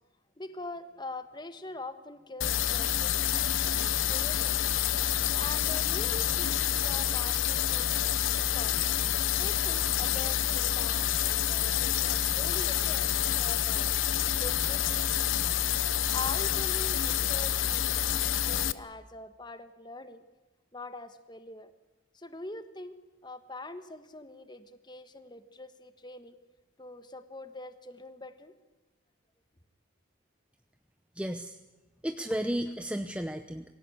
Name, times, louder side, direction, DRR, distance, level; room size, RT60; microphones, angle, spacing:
voice 1, 0.4-3.3 3.6-4.7 5.3-8.8 9.4-13.9 14.4-15.3 15.8-20.2 20.7-21.7 22.1-22.9 23.2-26.4 26.8-28.5, left 2 dB, 20° left, 10 dB, 1.4 m, -44 dB
sound 1, 2.4-18.7, left 10 dB, 80° left, 0.9 m, -28 dB
voice 2, 31.2-31.6 32.0-33.6, equal, 5° right, 7 dB, 0.8 m, -33 dB
24.5 x 16.5 x 9.9 m, 1.1 s
head